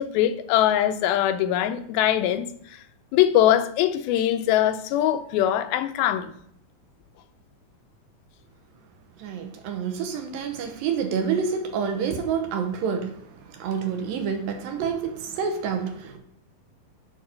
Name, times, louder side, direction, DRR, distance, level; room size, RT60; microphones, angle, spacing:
voice 1, 0.0-2.5 3.1-6.3, left 11 dB, 85° left, 2.5 m, -22 dB
voice 2, 9.2-13.1 13.6-16.2, right 6 dB, 80° right, 2.6 m, -28 dB
7.7 x 4.6 x 5.7 m
omnidirectional pair, 4.2 m